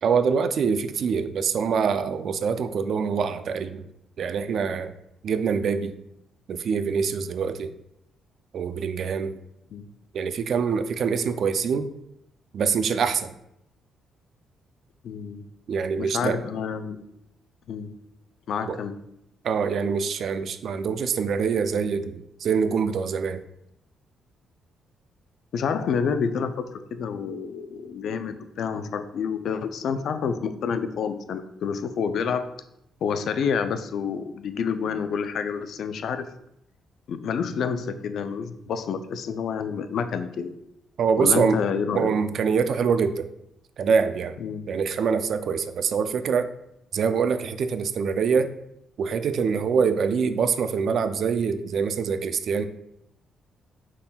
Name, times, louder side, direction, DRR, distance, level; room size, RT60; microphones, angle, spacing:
voice 1, 0.0-3.9 4.2-4.9 5.2-5.9 6.5-7.7 8.5-9.3 10.1-11.9 12.5-13.3 15.7-16.4 18.7-18.8 19.4-23.4 41.0-41.6 41.9-43.3 43.8-44.4 44.7-46.5 46.9-48.5 49.0-52.7, right 6 dB, 60° right, 11 dB, 0.3 m, -24 dB
voice 2, 15.0-15.4 16.0-17.0 17.7-17.9 18.5-19.0 25.5-32.4 33.0-36.3 37.1-40.5 41.2-42.1 44.4-44.7, left 6 dB, 65° left, 10 dB, 0.4 m, -28 dB
5.6 x 3.6 x 2.3 m, 0.79 s
cardioid pair, 90°, 0 cm